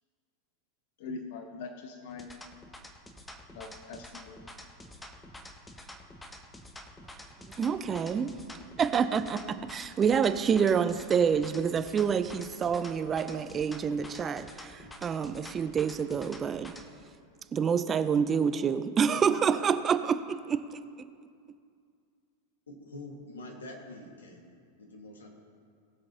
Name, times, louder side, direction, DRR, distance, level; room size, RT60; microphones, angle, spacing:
voice 1, 1.0-2.3 3.5-4.4, left 4 dB, 60° left, 5 dB, 0.8 m, -42 dB
sound 1, 2.1-16.9, left 1 dB, 10° left, 1.0 m, -48 dB
voice 2, 7.4-8.3 8.8-16.8 17.5-20.9, right 7 dB, 25° right, 11 dB, 0.5 m, -27 dB
voice 3, 22.7-25.3, left 2 dB, 75° left, 1 dB, 1.6 m, -46 dB
20.0 x 6.7 x 2.8 m, 2.2 s
figure-of-eight pair, 90°, 0 cm